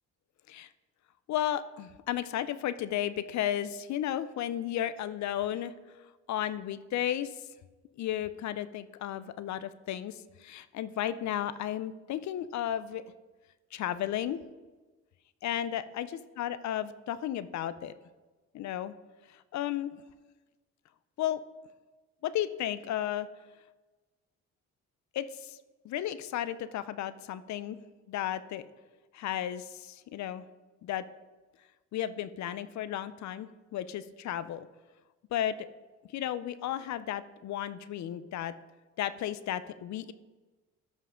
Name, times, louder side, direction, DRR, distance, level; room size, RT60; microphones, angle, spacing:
voice 1, 1.3-5.7 6.3-7.3 8.0-13.0 13.7-14.4 15.4-16.1 16.4-17.9 18.5-18.9 19.5-19.9 21.2-21.4 22.2-23.3 25.1-25.6 25.8-27.8 28.1-28.6 29.1-30.4 30.8-31.0 31.9-34.7 35.3-35.6 36.1-38.5 39.0-40.1, left 11 dB, 65° left, 14 dB, 0.6 m, -33 dB
13.0 x 5.6 x 3.7 m, 1.2 s
cardioid pair, 90°, 30 cm